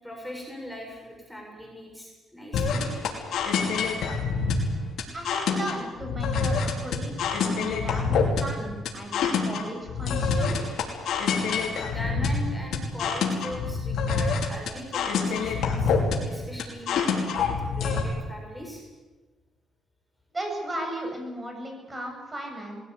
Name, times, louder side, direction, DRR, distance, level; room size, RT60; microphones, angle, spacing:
voice 1, 0.0-2.9 11.7-18.8, equal, 5° left, 0 dB, 6.6 m, -40 dB
sound 1, 2.5-18.0, left 5 dB, 75° left, 5.3 m, -26 dB
voice 2, 5.1-10.6 20.3-22.8, right 1 dB, 20° right, 2 dB, 7.5 m, -36 dB
21.0 x 17.5 x 9.7 m, 1.3 s
cardioid pair, 90°, 0 cm